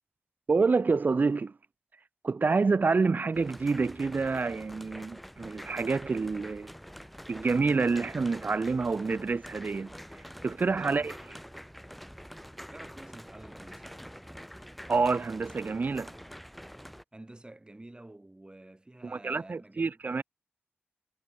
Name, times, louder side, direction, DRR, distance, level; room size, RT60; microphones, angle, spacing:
voice 1, 0.5-1.5 2.2-6.7 7.3-9.9 10.4-11.2 14.9-16.1 19.0-20.2, right 4 dB, 45° right, 0.4 m, -27 dB
sound 1, 3.3-17.0, equal, ahead, 1.0 m, -46 dB
voice 2, 10.8-11.1 12.7-14.0 17.1-20.2, right 1 dB, 20° right, 1.4 m, -50 dB
cardioid pair, 60°, 4 cm